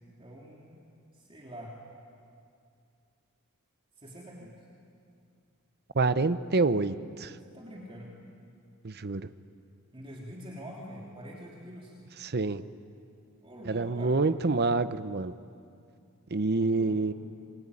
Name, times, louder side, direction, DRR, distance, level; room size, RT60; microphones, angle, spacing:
voice 1, 0.2-0.8 1.1-1.8 4.0-4.5 7.5-8.1 9.9-11.9 13.4-14.2 16.5-17.0, equal, 25° right, -3 dB, 3.3 m, -45 dB
voice 2, 5.9-7.3 8.8-9.2 12.2-12.6 13.7-15.3 16.3-17.1, right 3 dB, 45° right, 13 dB, 0.8 m, -27 dB
26.0 x 23.0 x 9.9 m, 2.4 s
head